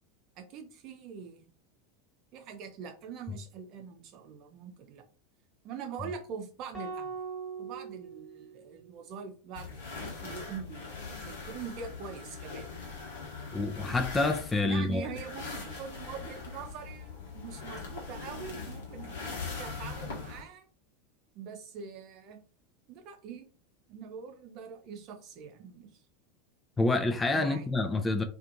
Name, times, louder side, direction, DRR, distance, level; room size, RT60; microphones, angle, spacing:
voice 1, 0.4-1.5 2.3-5.0 5.6-7.2 7.6-10.8 11.2-12.7 14.6-20.7 21.3-22.4 22.9-23.5 23.9-25.9 27.3-27.7 28.2-28.3, right 7 dB, 45° right, 0.6 m, -43 dB
sound 1, 6.7-9.1, right 5 dB, ahead, 1.2 m, -41 dB
sound 2, 9.5-20.4, left 4 dB, 65° left, 1.0 m, -41 dB
voice 2, 13.5-15.1 26.8-28.2, left 2 dB, 15° left, 0.3 m, -27 dB
2.5 x 2.5 x 2.7 m
figure-of-eight pair, 85°, 0 cm